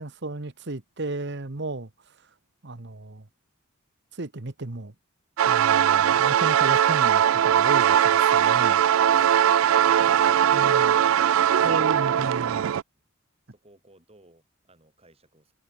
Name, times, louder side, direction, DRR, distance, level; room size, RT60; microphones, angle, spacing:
voice 1, 0.0-1.9 2.6-3.2 4.1-4.9 5.5-8.8 10.5-10.9 11.6-12.7, right 2 dB, 55° right, 1.3 m, -34 dB
sound 1, 5.4-12.8, right 9 dB, 80° right, 0.3 m, -20 dB
voice 2, 9.8-10.6 13.5-15.5, right 1 dB, 30° right, 7.1 m, -56 dB
head